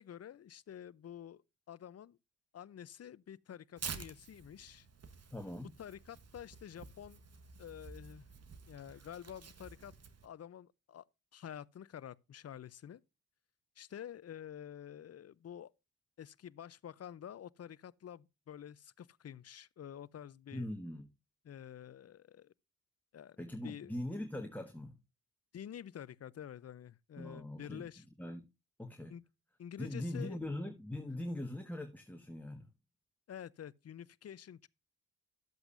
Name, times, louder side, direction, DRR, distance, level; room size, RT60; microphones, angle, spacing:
voice 1, 0.0-1.4 1.7-2.2 2.5-4.9 5.6-7.2 7.6-8.3 8.7-9.9 10.2-11.1 11.3-13.0 13.8-15.7 16.2-20.7 21.4-22.5 23.1-23.4 23.6-23.9 25.5-28.0 29.1-29.2 29.6-30.4 33.3-34.7, left 9 dB, 45° left, 0.6 m, -49 dB
Tearing, 3.8-10.3, right 5 dB, 45° right, 1.3 m, -50 dB
voice 2, 5.3-5.7 20.5-21.1 23.4-25.0 27.2-27.8 28.2-28.5 28.8-29.1 29.8-32.7, left 1 dB, 5° left, 1.5 m, -41 dB
12.0 x 8.0 x 2.6 m
supercardioid pair, 45°, 35 cm